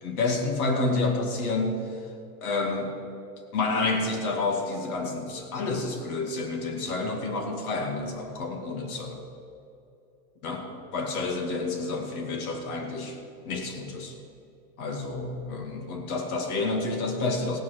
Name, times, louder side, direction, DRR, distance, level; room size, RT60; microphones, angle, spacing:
voice 1, 0.0-1.8 2.4-3.0 3.5-9.2 10.4-13.2 13.5-14.2 14.8-17.6, left 3 dB, 65° left, 4 dB, 2.4 m, -29 dB
17.0 x 9.7 x 6.4 m, 2.7 s
supercardioid pair, 180°, 46 cm